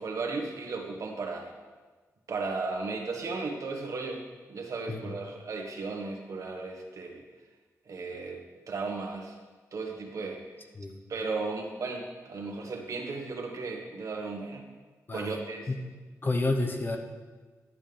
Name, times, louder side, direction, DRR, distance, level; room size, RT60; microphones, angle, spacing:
voice 1, 0.0-1.5 2.3-4.2 4.5-7.2 7.8-9.4 9.7-10.4 11.1-14.6 15.1-15.7, right 3 dB, 60° right, 2 dB, 1.6 m, -35 dB
voice 2, 16.2-17.0, left 2 dB, 35° left, 4 dB, 1.1 m, -29 dB
12.0 x 8.8 x 3.5 m, 1.3 s
cardioid pair, 95°, 6 cm